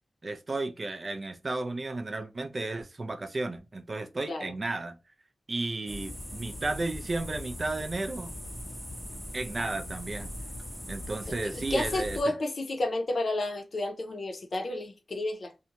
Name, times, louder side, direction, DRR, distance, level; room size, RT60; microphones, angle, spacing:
voice 1, 0.2-5.0 5.5-8.4 9.3-10.3 10.9-12.2, right 2 dB, 40° right, 0.4 m, -33 dB
sound 1, 5.9-12.2, left 1 dB, ahead, 0.7 m, -40 dB
voice 2, 11.3-15.5, left 2 dB, 50° left, 0.6 m, -31 dB
2.5 x 2.2 x 2.8 m
wide cardioid pair, 100°, 0 cm